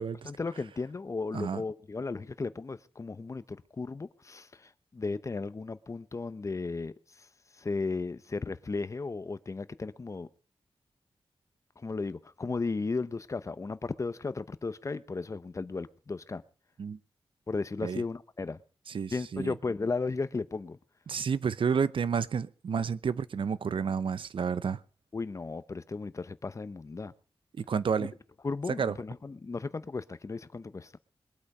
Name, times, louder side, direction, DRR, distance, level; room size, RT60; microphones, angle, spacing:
voice 1, 0.2-6.9 7.6-10.3 11.8-16.4 17.5-18.6 19.1-20.8 25.1-27.1 28.4-30.9, left 3 dB, 35° left, 0.8 m, -35 dB
voice 2, 18.9-19.5 21.1-24.8 27.6-28.1 28.8-28.9, right 6 dB, 70° right, 0.7 m, -30 dB
22.0 x 8.5 x 5.4 m
wide cardioid pair, 130°, 9 cm